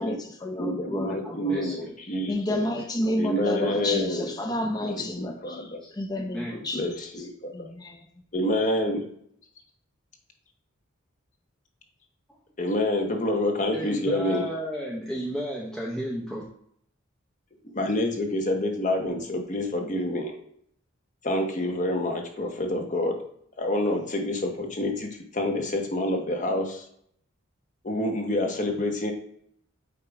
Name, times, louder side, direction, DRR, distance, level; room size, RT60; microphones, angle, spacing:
voice 1, 0.0-1.8 2.3-7.3 7.5-8.2, left 1 dB, 20° left, 3 dB, 0.6 m, -31 dB
voice 2, 0.6-2.7 3.1-4.3 4.9-5.8 6.5-7.5 8.3-9.0 12.6-14.4 17.7-20.3 21.2-23.2 23.6-26.9 27.8-29.1, left 1 dB, 40° left, 3 dB, 1.1 m, -27 dB
voice 3, 1.2-2.2 3.6-3.7 5.8-5.9 6.2-6.5 13.7-16.4, equal, 5° left, -5 dB, 0.9 m, -33 dB
8.6 x 2.9 x 4.8 m, 0.67 s
head